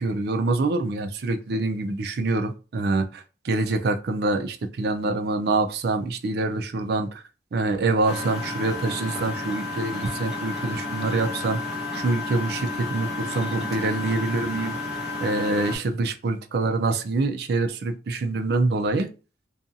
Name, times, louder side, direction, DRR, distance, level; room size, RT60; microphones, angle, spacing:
voice 1, 0.0-7.2 7.5-11.6 11.9-14.8 15.2-19.1, right 2 dB, 60° right, 0.4 m, -25 dB
Engine, 8.0-15.8, left 2 dB, ahead, 1.0 m, -31 dB
2.6 x 2.3 x 2.5 m
head